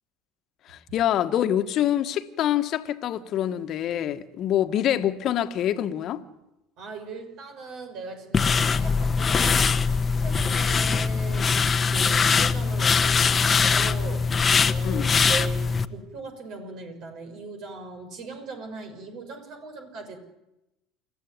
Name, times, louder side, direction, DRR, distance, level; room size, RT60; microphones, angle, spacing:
voice 1, 0.7-6.2 14.8-15.1, left 11 dB, 50° left, 1.6 m, -25 dB
voice 2, 6.8-11.5 11.9-20.2, right 4 dB, 55° right, 6.3 m, -39 dB
sound 1, 8.3-15.8, left 5 dB, 30° left, 1.2 m, -22 dB
29.0 x 14.5 x 9.6 m
hypercardioid pair, 70°, 0 cm